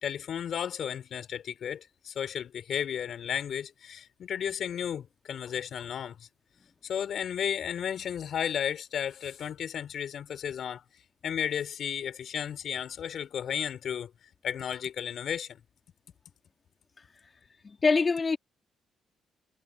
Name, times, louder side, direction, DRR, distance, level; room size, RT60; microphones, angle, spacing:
voice 1, 0.0-6.3 6.8-10.8 11.2-14.1 14.4-15.6, left 8 dB, 65° left, 4.1 m, -33 dB
voice 2, 17.0-17.3 17.6-18.4, left 4 dB, 35° left, 2.5 m, -26 dB
cardioid pair, 90°, 0 cm